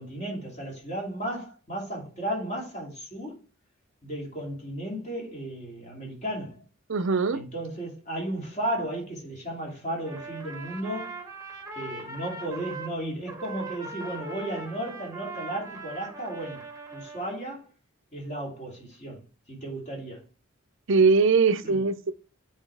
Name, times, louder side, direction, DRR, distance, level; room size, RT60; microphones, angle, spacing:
voice 1, 0.0-3.4 4.0-6.6 7.3-11.1 11.8-16.6 16.9-17.7 18.1-19.2 19.5-20.2 21.6-21.8, right 1 dB, 35° left, 2.7 m, -34 dB
voice 2, 6.9-7.4 20.9-22.1, right 4 dB, 60° right, 0.6 m, -21 dB
Trumpet, 10.0-12.9 13.3-17.4, right 3 dB, 15° right, 1.1 m, -40 dB
8.4 x 4.1 x 3.4 m
head